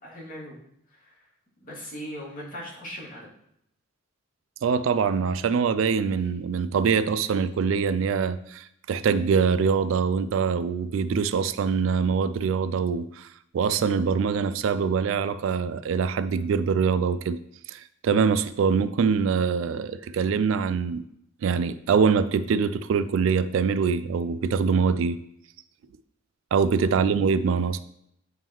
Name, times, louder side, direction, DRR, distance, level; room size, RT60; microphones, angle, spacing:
voice 1, 0.0-0.6 1.0-1.1 1.6-3.3 26.8-27.1, equal, 45° left, -5 dB, 2.0 m, -39 dB
voice 2, 4.6-13.3 13.5-17.4 17.7-21.0 21.4-25.2 26.5-27.8, right 6 dB, 70° right, 13 dB, 0.3 m, -24 dB
9.0 x 3.6 x 3.0 m, 0.73 s
head